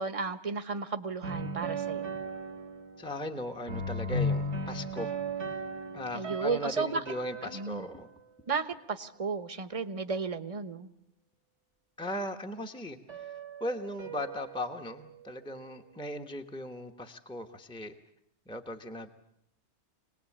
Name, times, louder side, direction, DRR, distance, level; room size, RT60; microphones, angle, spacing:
voice 1, 0.0-2.1 6.1-7.0 7.4-7.9 8.5-10.9, right 4 dB, 30° right, 10 dB, 1.1 m, -33 dB
sound 1, 1.2-3.4 3.7-8.0 13.1-15.1, right 1 dB, 80° right, 2.2 m, -36 dB
voice 2, 3.0-5.1 5.4-5.6 5.9-8.1 12.0-17.9 18.5-19.1, left 1 dB, 5° left, 4 dB, 1.2 m, -38 dB
26.0 x 19.5 x 8.7 m, 0.77 s
omnidirectional pair, 1.2 m